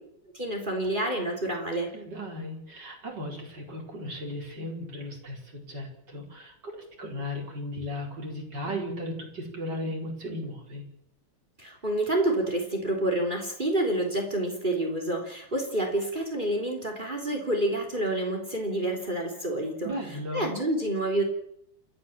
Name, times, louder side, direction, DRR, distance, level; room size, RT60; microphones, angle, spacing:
voice 1, 0.3-1.9 11.6-19.9 20.3-21.2, right 1 dB, 25° right, 2 dB, 3.7 m, -28 dB
voice 2, 1.9-10.9 19.8-20.5, left 1 dB, 55° right, 1 dB, 4.9 m, -36 dB
29.0 x 12.5 x 7.3 m, 0.72 s
omnidirectional pair, 2.2 m